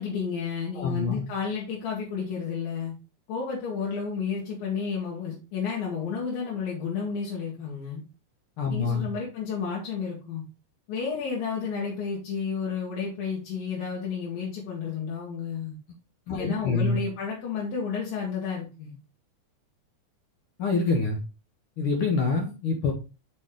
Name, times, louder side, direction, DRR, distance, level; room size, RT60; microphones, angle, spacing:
voice 1, 0.0-2.9 3.3-8.0 8.7-10.4 10.9-15.8 16.3-19.0, left 6 dB, 90° left, -4 dB, 3.2 m, -31 dB
voice 2, 0.8-1.3 8.6-9.1 16.3-17.0 20.6-21.2 21.8-22.9, left 4 dB, 70° left, 1 dB, 1.3 m, -26 dB
6.3 x 4.5 x 3.7 m, 0.31 s
omnidirectional pair, 3.9 m